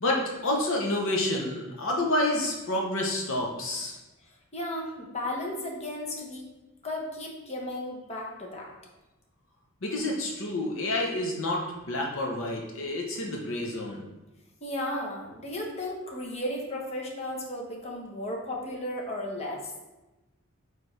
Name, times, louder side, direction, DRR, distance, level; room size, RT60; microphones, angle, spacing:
voice 1, 0.0-4.0 9.8-14.0, left 1 dB, 65° left, 0 dB, 0.9 m, -29 dB
voice 2, 4.5-6.4 6.8-8.7 14.6-19.7, left 1 dB, 30° left, -1 dB, 1.1 m, -34 dB
8.6 x 3.3 x 3.3 m, 1.1 s
head